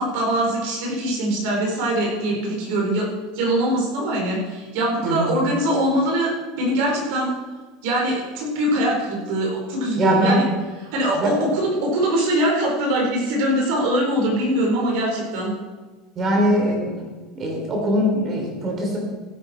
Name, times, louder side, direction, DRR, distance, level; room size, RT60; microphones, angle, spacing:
voice 1, 0.0-3.1 3.3-6.3 6.6-7.3 7.8-10.4 10.9-15.5, right 1 dB, 60° right, -1 dB, 4.4 m, -22 dB
voice 2, 5.0-5.4 10.0-10.5 11.1-11.5 16.1-16.9 17.3-19.0, equal, 25° right, 1 dB, 3.2 m, -21 dB
15.5 x 9.3 x 4.4 m, 1.3 s
supercardioid pair, 170°, 0 cm